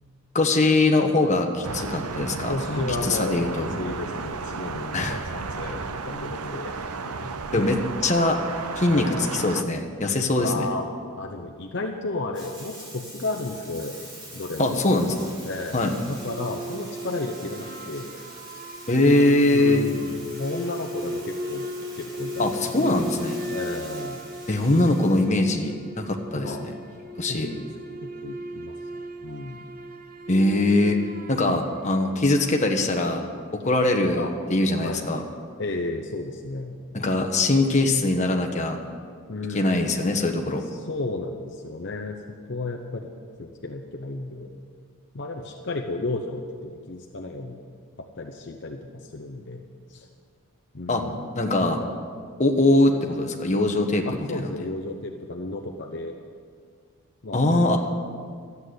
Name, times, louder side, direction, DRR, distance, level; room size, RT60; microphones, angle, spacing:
voice 1, 0.3-3.7 4.9-5.2 7.5-7.8 8.0-8.4 8.8-10.7 14.6-15.3 15.7-15.9 18.9-19.8 22.4-23.4 24.5-26.7 27.2-27.5 30.3-31.0 31.3-33.2 33.6-35.2 36.9-38.8 39.5-40.6 50.9-51.0 51.3-51.8 52.4-54.1 54.3-54.5 57.3-57.8, left 2 dB, 30° left, 3 dB, 1.2 m, -22 dB
Thunder, 1.6-9.6, right 4 dB, 85° right, 0.8 m, -33 dB
voice 2, 2.5-6.7 7.2-7.7 8.9-9.4 10.4-10.8 11.2-14.0 14.3-14.8 15.4-18.2 18.5-18.6 19.5-21.7 22.0-23.0 23.5-24.2 26.4-26.7 27.3-27.7 28.0-28.7 29.2-29.6 34.2-34.3 34.8-35.1 35.6-36.8 39.3-40.0 40.6-42.2 42.5-43.1 43.4-44.5 45.1-47.6 48.0-49.6 49.9-50.1 50.7-51.3 54.1-56.2 57.2-57.8, left 2 dB, 50° left, 2 dB, 0.8 m, -33 dB
Bathtub (filling or washing), 12.3-25.2, right 1 dB, 20° right, 2.9 m, -45 dB
sound 1, 16.1-32.7, equal, 40° right, 0.7 m, -37 dB
13.0 x 8.3 x 9.5 m, 2.1 s
head